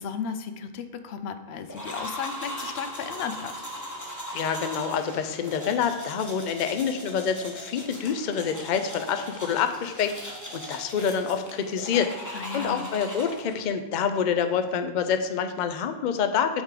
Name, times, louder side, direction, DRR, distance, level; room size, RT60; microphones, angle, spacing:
voice 1, 0.0-3.7 12.3-12.9, left 6 dB, 90° left, 9 dB, 0.9 m, -35 dB
sound 1, 1.7-13.7, equal, 20° left, 1.1 m, -39 dB
voice 2, 4.3-16.6, left 7 dB, 55° left, 8 dB, 0.6 m, -27 dB
8.8 x 3.7 x 4.8 m, 1.2 s
omnidirectional pair, 1.0 m